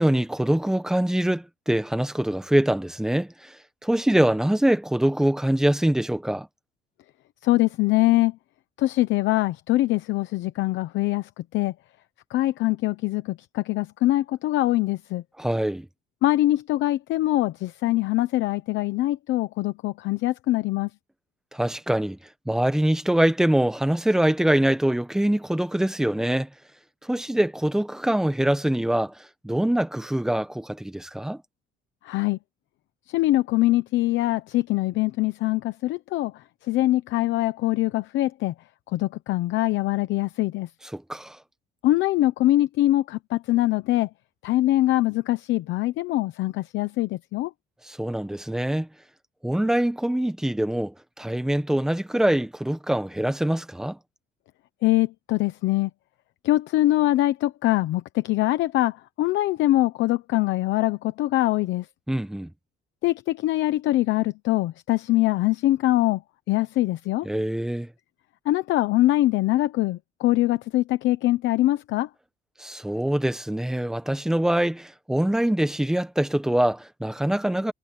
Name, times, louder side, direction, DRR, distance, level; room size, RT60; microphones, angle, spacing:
voice 1, 0.0-3.5 3.8-6.5 15.4-15.9 21.5-22.2 22.5-26.5 27.0-29.1 29.4-31.4 40.9-41.4 47.8-48.9 49.4-54.0 62.1-62.5 67.2-67.9 72.6-77.7, right 1 dB, 5° right, 1.3 m, -24 dB
voice 2, 7.4-8.3 8.8-11.7 12.3-15.2 16.2-20.9 32.0-32.4 33.1-36.3 36.7-38.5 38.9-40.7 41.8-44.1 44.4-47.5 54.8-55.9 56.4-61.8 63.0-66.2 66.5-67.3 68.5-72.1, left 16 dB, 90° left, 0.9 m, -23 dB
cardioid pair, 170°, 19 cm